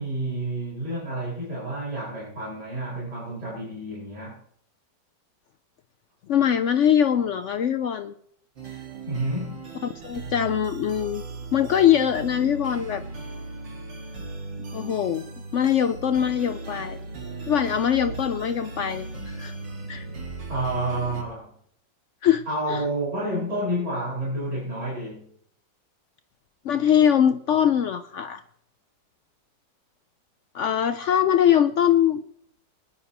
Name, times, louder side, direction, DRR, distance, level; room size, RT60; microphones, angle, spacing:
voice 1, 0.0-4.4 9.1-9.6 20.5-21.5 22.5-25.3, right 1 dB, 40° right, -7 dB, 5.4 m, -29 dB
voice 2, 6.3-8.1 10.0-11.2 11.5-13.0 14.7-15.2 15.5-17.0 17.5-19.5 19.9-20.1 22.2-22.8 26.6-28.4 30.5-32.2, left 9 dB, 80° left, 9 dB, 0.6 m, -22 dB
sound 1, 8.6-21.2, right 3 dB, 85° right, 2.5 m, -37 dB
21.0 x 10.5 x 3.0 m, 0.65 s
omnidirectional pair, 1.9 m